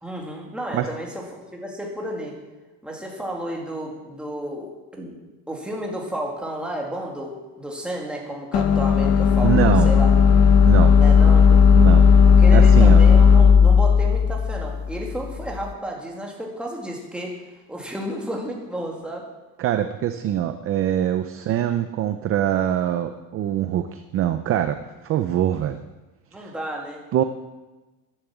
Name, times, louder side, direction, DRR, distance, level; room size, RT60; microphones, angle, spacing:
voice 1, 0.0-2.4 2.8-5.2 5.5-10.1 11.0-11.6 12.3-17.4 17.7-19.3 21.3-21.5 26.3-27.2, right 1 dB, 5° right, -1 dB, 2.1 m, -32 dB
sound 1, 8.5-15.6, left 6 dB, 40° left, 0.9 m, -14 dB
voice 2, 9.4-9.9 10.7-10.9 11.8-12.0 12.5-13.0 19.6-24.8 25.0-25.8 26.4-26.5 27.1-27.2, right 11 dB, 35° right, 9 dB, 0.5 m, -23 dB
11.0 x 10.5 x 7.3 m, 1.1 s
cardioid pair, 180°, 39 cm